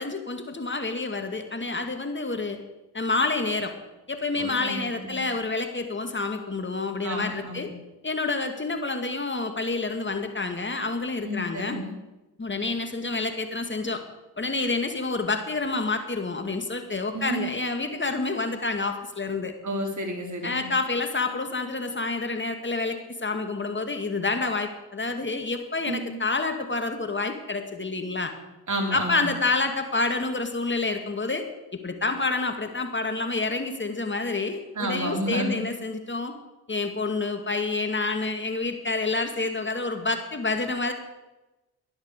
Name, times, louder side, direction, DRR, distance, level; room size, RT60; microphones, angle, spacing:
voice 1, 0.0-2.6 2.9-3.7 4.1-7.7 8.0-11.8 12.4-14.0 14.4-19.5 20.4-28.3 28.9-31.4 31.8-36.3 36.7-40.9, left 3 dB, 25° left, 6 dB, 2.2 m, -28 dB
voice 2, 4.3-5.2 7.0-7.7 11.2-11.9 17.1-17.5 19.6-20.6 25.9-26.1 28.7-29.3 34.7-35.6, right 1 dB, 40° right, 2 dB, 4.4 m, -31 dB
14.5 x 11.0 x 6.8 m, 1.0 s
hypercardioid pair, 50°, 47 cm